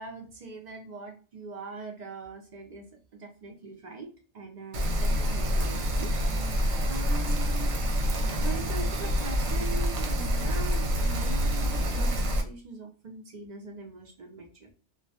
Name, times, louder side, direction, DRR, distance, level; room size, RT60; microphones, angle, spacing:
voice 1, 0.0-6.3 6.9-7.7 8.2-14.7, right 3 dB, 55° right, 3 dB, 0.5 m, -41 dB
Rain, 4.7-12.4, equal, 75° right, 0.9 m, -27 dB
2.2 x 2.1 x 2.6 m, 0.37 s
omnidirectional pair, 1.2 m